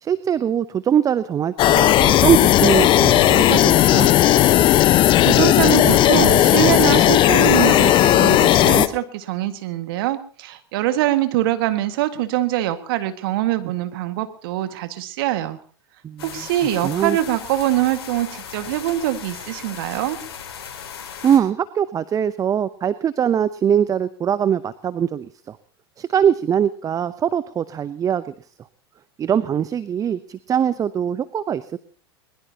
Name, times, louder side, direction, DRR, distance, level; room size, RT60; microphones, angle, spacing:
voice 1, 0.0-4.1 16.0-16.3 16.8-17.2 21.2-25.6 26.0-28.3 29.2-31.8, right 8 dB, 25° right, 16 dB, 0.7 m, -22 dB
sound 1, 1.6-8.9, left 13 dB, 40° left, 1.0 m, -15 dB
voice 2, 5.2-15.6 16.2-20.2, right 13 dB, 60° right, 9 dB, 1.9 m, -23 dB
sound 2, 16.2-21.4, left 7 dB, 70° left, 3.9 m, -37 dB
22.5 x 21.0 x 2.9 m, 0.42 s
hypercardioid pair, 90°, 13 cm